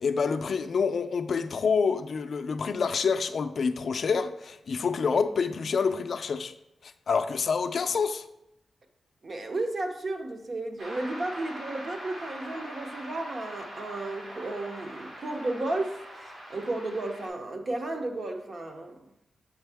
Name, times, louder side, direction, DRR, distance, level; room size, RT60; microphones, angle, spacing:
voice 1, 0.0-6.5 6.8-8.2, left 5 dB, 55° left, 0.3 m, -27 dB
voice 2, 9.2-16.0 16.5-19.0, right 2 dB, 40° right, 0.7 m, -33 dB
sound 1, 10.8-17.3, equal, 90° right, 2.7 m, -42 dB
7.0 x 5.3 x 3.4 m
wide cardioid pair, 160°, 0 cm